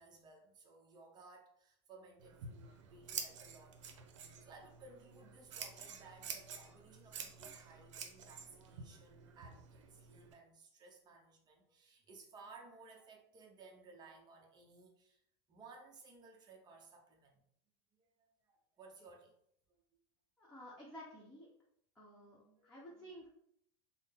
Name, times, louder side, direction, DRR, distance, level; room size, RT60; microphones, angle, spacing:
voice 1, 0.0-3.8 4.2-15.2 15.5-17.4 18.0-19.4 22.1-23.1, right 3 dB, 25° right, 1 dB, 0.8 m, -59 dB
Scissors, 2.2-10.3, right 6 dB, 85° right, 0.6 m, -49 dB
voice 2, 20.4-21.5 21.9-23.3, equal, 5° left, -8 dB, 1.0 m, -53 dB
3.7 x 2.1 x 3.6 m, 0.69 s
supercardioid pair, 130°, 16 cm